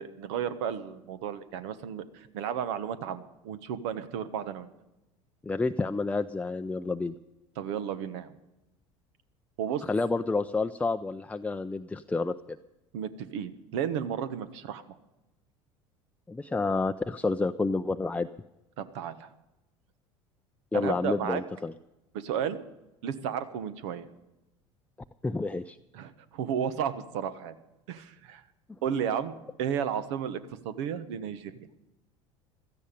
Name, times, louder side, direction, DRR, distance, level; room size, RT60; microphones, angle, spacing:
voice 1, 0.0-4.7 7.6-8.3 9.6-9.8 12.9-14.8 18.8-19.3 20.7-21.4 22.1-22.6 23.0-24.1 25.9-27.5 27.9-28.4 28.8-29.3 29.6-31.5, right 8 dB, 65° right, 13 dB, 1.2 m, -33 dB
voice 2, 5.4-7.1 9.9-12.6 16.3-18.3 20.7-21.7 25.2-25.8, left 3 dB, 10° left, 9 dB, 0.5 m, -29 dB
16.5 x 14.0 x 5.2 m, 0.97 s
hypercardioid pair, 70°, 16 cm